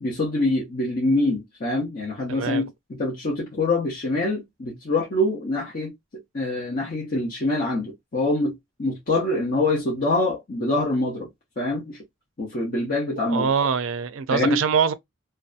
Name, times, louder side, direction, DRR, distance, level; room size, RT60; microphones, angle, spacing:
voice 1, 0.0-5.9 6.3-11.3 11.6-12.0 12.4-13.5 14.3-14.6, left 2 dB, 40° left, 0.7 m, -25 dB
voice 2, 2.3-2.6 13.3-14.9, right 6 dB, 65° right, 0.4 m, -23 dB
2.6 x 2.3 x 2.4 m
head